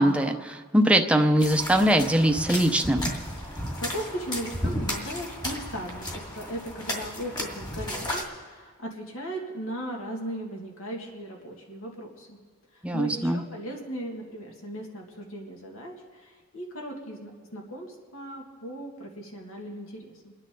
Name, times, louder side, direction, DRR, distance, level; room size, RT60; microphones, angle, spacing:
voice 1, 0.0-3.1 12.8-13.4, right 1 dB, 5° right, 4 dB, 0.7 m, -22 dB
sound 1, 1.4-8.2, left 1 dB, 20° left, 2.2 m, -33 dB
voice 2, 3.4-12.4 12.7-20.3, equal, 75° left, 0 dB, 2.3 m, -37 dB
29.5 x 9.9 x 3.9 m, 1.5 s
head